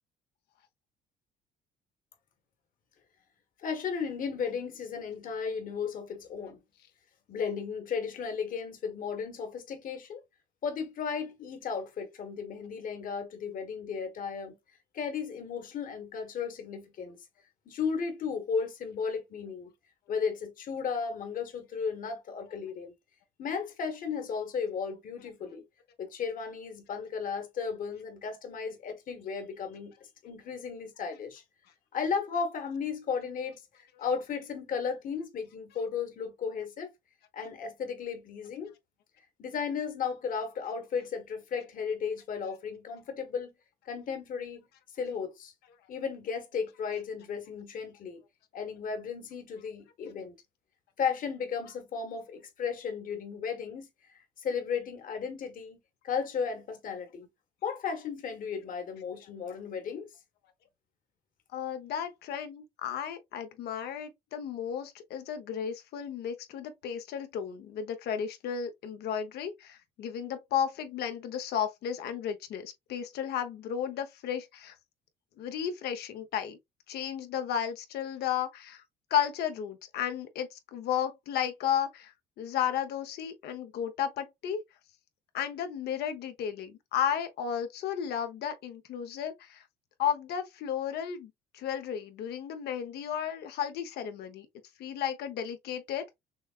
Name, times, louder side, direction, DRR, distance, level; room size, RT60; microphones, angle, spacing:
voice 1, 3.6-6.6 7.3-10.2 10.6-14.6 14.9-17.2 17.6-19.7 20.1-22.9 23.4-25.6 26.0-31.4 31.9-36.9 37.3-38.7 39.4-43.5 43.9-44.7 44.9-45.5 45.9-48.2 48.5-50.3 51.0-55.8 56.0-57.3 57.6-60.1, left 6 dB, 55° left, 1.5 m, -35 dB
voice 2, 61.5-74.7 75.4-76.6 76.9-78.8 79.1-84.6 85.3-89.6 90.0-94.5 94.8-96.1, left 9 dB, 70° left, 1.0 m, -33 dB
6.2 x 2.2 x 2.4 m
cardioid pair, 110°, 17 cm